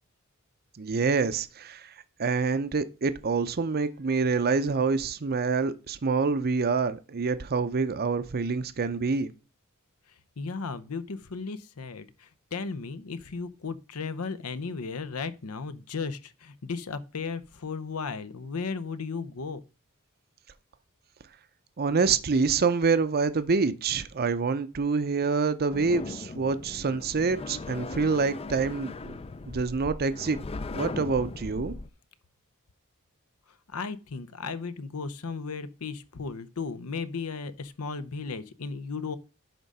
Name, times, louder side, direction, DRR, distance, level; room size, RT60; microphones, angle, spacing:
voice 1, 0.8-1.9 2.2-9.3 21.8-29.2 29.4-30.4 30.7-31.8, right 4 dB, 45° right, 0.6 m, -26 dB
voice 2, 10.4-19.6 33.7-39.2, left 4 dB, 80° left, 0.8 m, -35 dB
sound 1, 25.7-31.9, left 3 dB, 25° left, 0.4 m, -38 dB
10.5 x 3.8 x 5.4 m
head